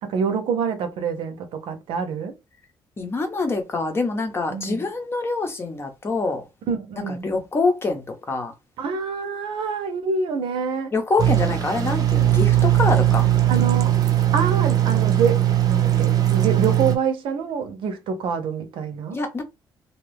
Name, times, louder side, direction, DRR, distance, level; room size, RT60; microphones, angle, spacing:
voice 1, 0.0-2.4 4.5-4.9 6.7-7.3 8.8-10.9 13.5-14.0 14.3-15.4 15.7-19.2, right 6 dB, 85° right, 0.7 m, -26 dB
voice 2, 3.0-6.4 7.2-8.5 10.9-13.3 19.1-19.4, left 3 dB, 30° left, 0.7 m, -25 dB
sound 1, 11.2-17.0, right 12 dB, 45° right, 0.6 m, -19 dB
2.6 x 2.3 x 3.3 m
cardioid pair, 140°, 9 cm